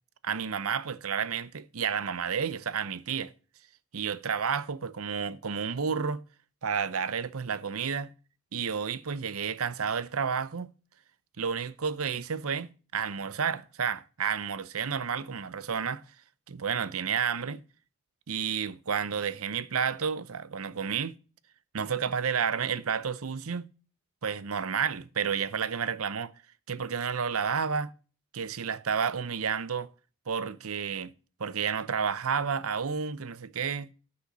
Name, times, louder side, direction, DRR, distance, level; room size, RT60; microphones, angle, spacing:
voice 1, 0.2-3.3 3.9-6.2 6.6-8.1 8.5-10.7 11.4-16.0 16.5-17.6 18.3-21.2 21.7-23.7 24.2-26.3 26.7-27.9 28.3-29.9 30.3-31.1 31.4-33.9, right 6 dB, 80° right, 0.7 m, -31 dB
10.0 x 5.6 x 6.7 m
head